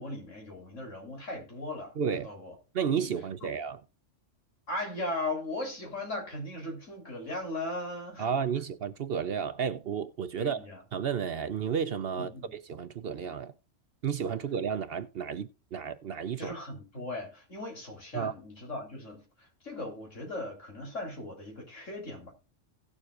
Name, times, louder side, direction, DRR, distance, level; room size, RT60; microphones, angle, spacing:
voice 1, 0.0-2.5 4.7-8.3 10.4-10.8 12.2-12.5 16.4-22.3, left 2 dB, 75° left, 4.0 m, -38 dB
voice 2, 2.0-2.3 2.7-3.8 8.2-13.5 14.0-16.5 18.1-18.3, right 7 dB, 60° right, 0.8 m, -32 dB
17.5 x 7.2 x 2.5 m
omnidirectional pair, 1.3 m